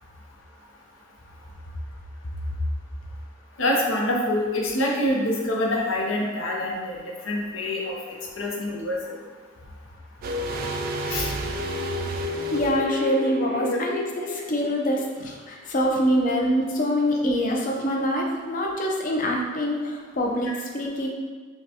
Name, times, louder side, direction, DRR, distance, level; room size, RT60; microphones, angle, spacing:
voice 1, 3.6-7.0 7.2-8.0 8.4-9.0 11.1-11.3 13.7-13.8, left 1 dB, 90° left, -1 dB, 0.7 m, -25 dB
sound 1, 10.2-15.1 15.3-15.4, left 1 dB, 50° right, 0.3 m, -30 dB
voice 2, 12.2-21.1, equal, 45° left, 0 dB, 0.5 m, -25 dB
5.6 x 2.2 x 2.8 m, 1.5 s
head